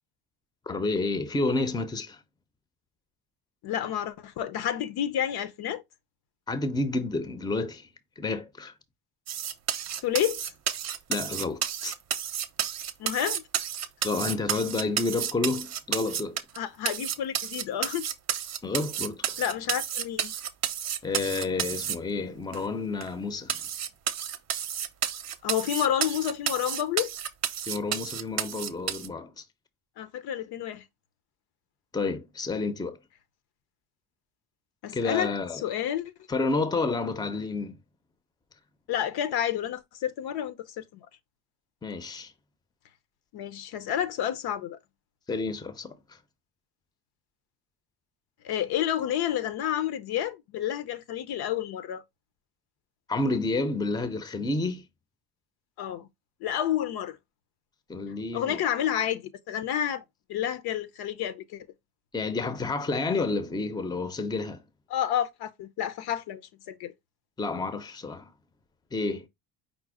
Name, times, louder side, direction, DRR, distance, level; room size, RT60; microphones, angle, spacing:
voice 1, 0.7-2.2 6.5-7.9 8.2-8.7 11.1-11.9 14.0-16.4 18.6-19.3 21.0-23.6 27.7-29.4 31.9-33.0 34.9-35.6 36.3-37.8 41.8-42.3 45.3-46.2 53.1-54.8 57.9-58.6 62.1-64.6 67.4-68.3 68.9-69.3, left 3 dB, 10° left, 0.6 m, -30 dB
voice 2, 3.6-5.8 10.0-10.4 13.0-13.4 16.6-18.1 19.4-20.3 25.4-27.1 30.0-30.8 34.8-35.3 35.6-36.1 38.9-40.8 43.3-44.8 48.4-52.0 55.8-56.1 56.4-57.2 58.3-60.0 60.3-61.7 64.9-66.4 66.7-66.9, left 10 dB, 65° left, 0.8 m, -30 dB
sound 1, 9.3-16.6 16.8-21.9 22.5-22.6 23.0-23.1 23.5-29.1, right 9 dB, 40° right, 0.7 m, -31 dB
5.1 x 2.0 x 4.7 m
cardioid pair, 100°, 40 cm